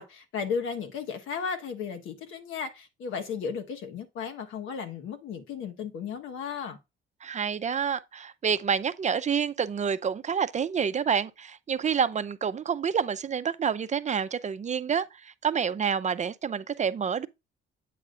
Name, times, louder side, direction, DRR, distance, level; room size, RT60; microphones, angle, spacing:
voice 1, 0.0-6.8, left 6 dB, 85° left, 1.3 m, -35 dB
voice 2, 7.2-17.3, right 7 dB, 35° right, 0.5 m, -28 dB
8.4 x 6.3 x 2.5 m
cardioid pair, 90°, 20 cm